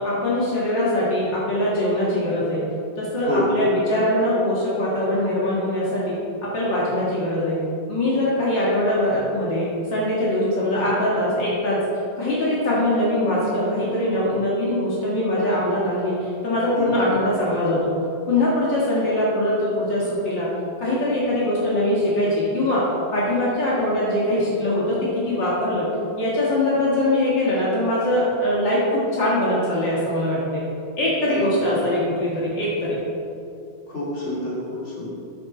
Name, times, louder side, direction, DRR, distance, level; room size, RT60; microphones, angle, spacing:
voice 1, 0.0-2.6 3.0-7.6 7.9-11.8 12.2-16.1 16.4-17.9 18.3-20.5 20.8-22.8 23.1-25.0 25.3-25.9 26.2-30.6 31.0-33.0, left 1 dB, 70° left, -7 dB, 2.5 m, -22 dB
voice 2, 33.9-35.1, left 1 dB, 35° left, -7 dB, 2.9 m, -27 dB
9.7 x 7.9 x 4.4 m, 2.6 s
omnidirectional pair, 2.1 m